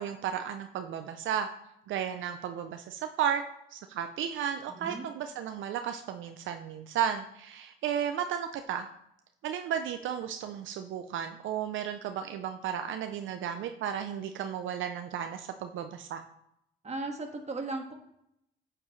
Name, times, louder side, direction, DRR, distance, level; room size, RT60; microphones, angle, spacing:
voice 1, 0.0-1.5 1.9-3.4 3.7-8.9 9.4-16.2, right 9 dB, 75° right, 7 dB, 0.6 m, -34 dB
voice 2, 4.7-5.0 16.8-17.9, right 2 dB, 35° right, 2 dB, 1.6 m, -36 dB
8.9 x 7.7 x 3.2 m, 0.77 s
cardioid pair, 90°, 20 cm